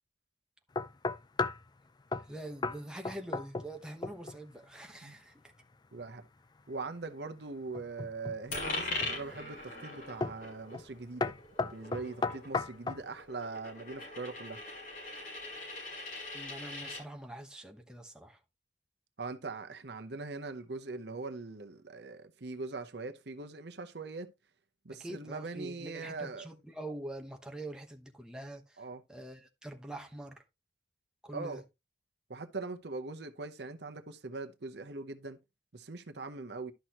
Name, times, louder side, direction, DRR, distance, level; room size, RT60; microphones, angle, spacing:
sound 1, 0.8-1.7 2.1-2.3 2.6-2.8 3.0-3.8 4.0-4.4 7.7-8.4 9.0-9.4 10.2-10.5 10.7-10.9 11.2-13.1, left 3 dB, 25° left, 0.4 m, -34 dB
voice 1, 2.3-5.4 16.3-18.4 25.0-28.8 29.1-30.4 31.2-31.6, right 1 dB, 5° right, 1.1 m, -44 dB
voice 2, 5.9-6.3 6.7-11.3 11.6-14.6 19.2-24.3 24.8-26.5 28.8-29.0 31.3-31.6 32.3-35.4 35.7-36.7, right 3 dB, 65° right, 0.9 m, -41 dB
Coin (dropping), 8.5-17.0, left 2 dB, 50° left, 5.6 m, -41 dB
11.5 x 6.1 x 3.0 m
head